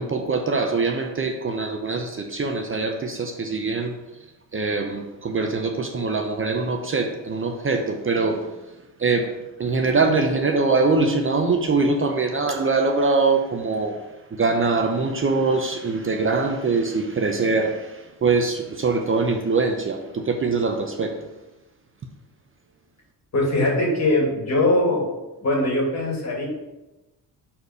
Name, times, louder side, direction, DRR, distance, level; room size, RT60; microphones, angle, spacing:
voice 1, 0.0-3.9 4.5-8.4 9.0-9.3 9.6-14.0 14.3-21.1, right 3 dB, 30° right, 4 dB, 0.7 m, -23 dB
voice 2, 23.3-25.1 25.4-26.5, left 1 dB, 40° left, -1 dB, 2.6 m, -21 dB
6.5 x 4.4 x 5.3 m, 1.0 s
cardioid pair, 90°, 42 cm